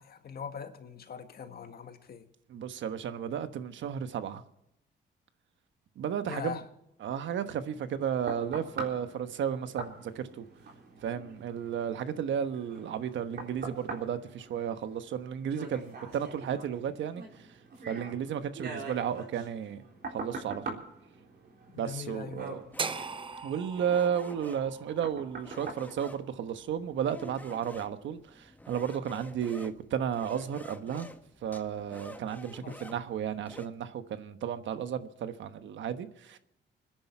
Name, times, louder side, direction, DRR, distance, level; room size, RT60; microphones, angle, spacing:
voice 1, 0.0-2.3 6.3-6.6 21.7-22.6 32.6-32.8, left 7 dB, 55° left, 1.8 m, -41 dB
voice 2, 2.5-4.4 6.0-6.6 7.0-10.4 11.0-17.5 17.9-19.8 20.1-20.8 21.8-22.6 23.4-31.1 31.4-36.4, right 8 dB, 80° right, 1.2 m, -33 dB
sound 1, 7.6-26.9 27.4-27.5, right 3 dB, 55° right, 3.8 m, -44 dB
sound 2, 22.7-33.7, left 1 dB, 10° left, 1.2 m, -50 dB
sound 3, 22.8-26.9, right 4 dB, 25° right, 0.7 m, -40 dB
26.5 x 10.5 x 4.5 m
cardioid pair, 120°, 19 cm